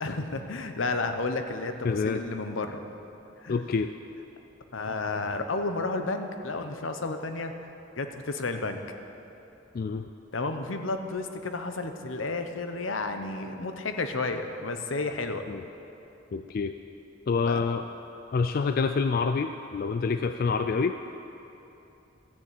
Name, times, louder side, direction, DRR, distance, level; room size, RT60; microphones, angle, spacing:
voice 1, 0.0-2.8 3.4-3.6 4.7-7.7 8.0-8.8 10.3-15.4 17.4-17.6, left 3 dB, 80° left, 7 dB, 0.9 m, -32 dB
voice 2, 1.8-2.2 3.5-3.9 9.7-10.1 15.5-15.6 16.3-16.7 17.3-17.8 18.3-21.0, left 4 dB, 50° left, 9 dB, 0.3 m, -27 dB
13.5 x 7.1 x 8.2 m, 2.9 s
head